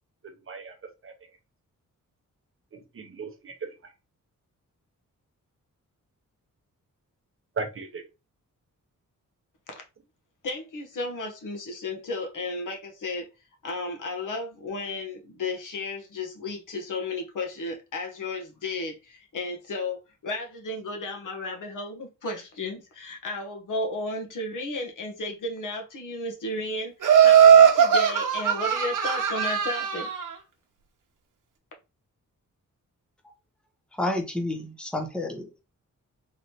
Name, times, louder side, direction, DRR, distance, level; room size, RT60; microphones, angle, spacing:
voice 1, 0.2-0.8 1.0-1.1 2.7-3.9 7.6-8.1, right 4 dB, 40° right, 0.7 m, -37 dB
voice 2, 10.4-13.3 13.6-30.1, left 2 dB, 75° left, 1.1 m, -34 dB
Laughter, 27.0-30.2, right 8 dB, 75° right, 0.9 m, -18 dB
voice 3, 34.0-35.5, left 1 dB, 5° left, 0.7 m, -29 dB
4.0 x 3.1 x 2.8 m
wide cardioid pair, 170°, 32 cm